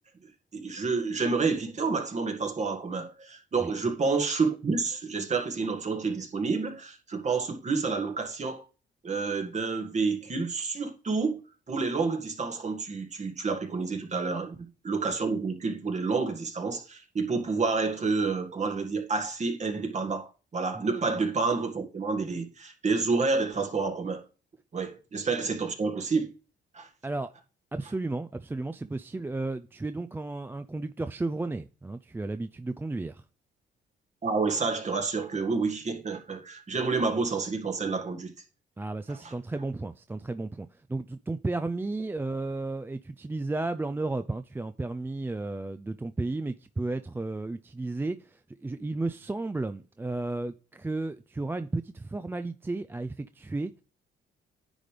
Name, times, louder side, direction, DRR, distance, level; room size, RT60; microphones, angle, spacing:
voice 1, 0.5-8.6 9.0-11.4 11.7-14.6 14.8-24.2 24.7-26.3 26.7-26.9 34.2-38.3 39.2-39.3, right 4 dB, 35° right, 1.8 m, -29 dB
voice 2, 27.7-33.2 38.8-53.7, right 2 dB, 10° right, 0.4 m, -33 dB
9.9 x 3.3 x 5.2 m
cardioid pair, 90°, 20 cm